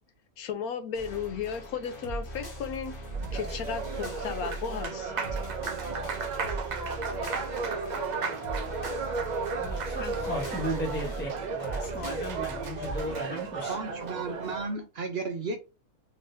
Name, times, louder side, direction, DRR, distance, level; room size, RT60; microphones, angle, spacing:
voice 1, 0.4-2.9 3.3-5.2, left 7 dB, 80° left, 1.2 m, -34 dB
sound 1, 0.9-13.1, right 1 dB, 40° left, 1.3 m, -39 dB
Applause, 2.9-14.7, right 4 dB, 90° right, 0.3 m, -34 dB
voice 2, 9.5-13.8, equal, 10° left, 0.6 m, -35 dB
voice 3, 13.7-15.6, right 3 dB, 55° right, 0.7 m, -34 dB
3.8 x 3.6 x 2.6 m
omnidirectional pair, 1.6 m